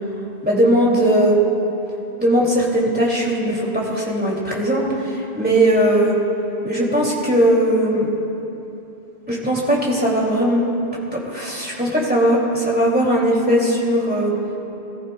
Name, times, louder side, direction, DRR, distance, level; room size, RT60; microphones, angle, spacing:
voice 1, 0.4-1.4 2.2-6.2 6.6-8.1 9.3-10.6 11.1-14.3, right 1 dB, 10° right, -5 dB, 2.5 m, -19 dB
20.5 x 14.5 x 2.3 m, 3.0 s
omnidirectional pair, 1.1 m